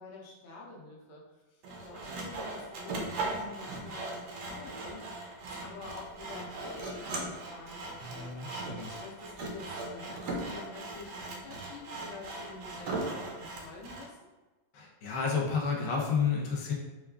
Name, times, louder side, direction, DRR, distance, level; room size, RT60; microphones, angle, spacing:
voice 1, 0.0-8.3 9.0-14.2, left 2 dB, 80° left, -3 dB, 1.5 m, -48 dB
Sawing, 1.6-14.1, right 2 dB, 70° right, 1.0 m, -39 dB
voice 2, 8.0-9.0 14.7-16.7, left 5 dB, 65° left, -2 dB, 0.8 m, -31 dB
4.6 x 2.3 x 2.3 m, 1.2 s
omnidirectional pair, 2.2 m